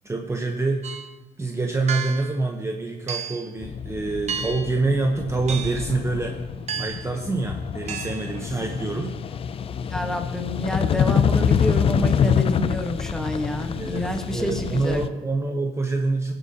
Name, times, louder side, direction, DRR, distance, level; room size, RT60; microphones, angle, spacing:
voice 1, 0.0-0.8 1.4-6.4 6.8-9.1 13.7-16.3, right 3 dB, 15° right, 2 dB, 0.9 m, -26 dB
sound 1, 0.8-1.1 1.9-2.4 3.1-3.5 4.3-4.8 5.5-5.9 6.7-7.1 7.9-8.3, right 7 dB, 40° right, 0.7 m, -32 dB
sound 2, 3.6-15.1, left 7 dB, 35° left, 0.4 m, -26 dB
voice 2, 9.5-15.0, equal, 5° left, 4 dB, 1.2 m, -29 dB
17.5 x 7.7 x 2.8 m, 1.2 s
cardioid pair, 110°, 17 cm